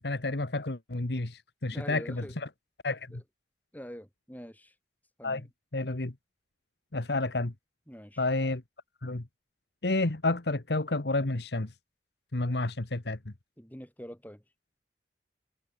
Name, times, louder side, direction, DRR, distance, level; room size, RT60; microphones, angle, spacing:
voice 1, 0.0-2.5 2.8-3.1 5.2-5.5 5.7-6.1 6.9-7.5 8.2-8.6 9.0-9.2 9.8-11.7 12.3-13.3, left 2 dB, 70° left, 1.5 m, -30 dB
voice 2, 1.7-2.3 3.1-3.2 3.7-4.7 5.2-5.4 7.9-8.2 13.6-14.4, equal, 10° left, 7.7 m, -45 dB
head